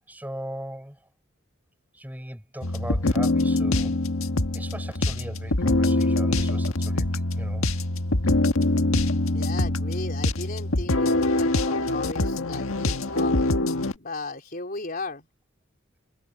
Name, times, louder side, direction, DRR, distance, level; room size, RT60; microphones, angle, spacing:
voice 1, 0.1-1.1 1.9-4.0 4.5-7.7, right 1 dB, 10° right, 5.2 m, -39 dB
sound 1, 2.6-13.9, left 2 dB, 90° left, 1.6 m, -24 dB
voice 2, 9.3-13.4 13.9-15.3, left 3 dB, 45° left, 4.1 m, -36 dB
head